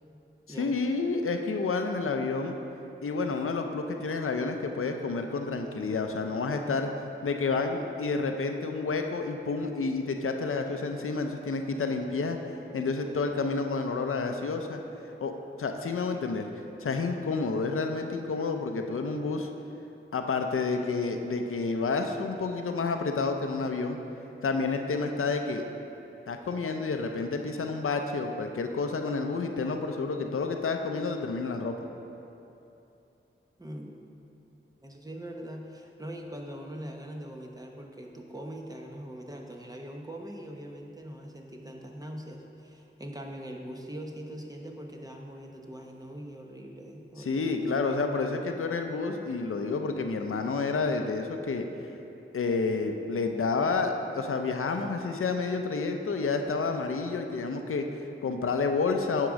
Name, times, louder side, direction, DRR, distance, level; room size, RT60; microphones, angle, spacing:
voice 1, 0.6-2.5 3.0-6.9 7.2-12.4 12.7-14.8 15.2-15.3 15.6-16.5 16.8-19.5 20.1-24.0 24.4-25.6 26.3-31.7 47.2-51.6 52.3-59.3, left 4 dB, 85° left, 5 dB, 0.6 m, -29 dB
voice 2, 33.6-33.9 34.8-47.8, equal, 15° right, 1 dB, 0.8 m, -42 dB
9.4 x 3.8 x 6.1 m, 2.9 s
wide cardioid pair, 75°, 21 cm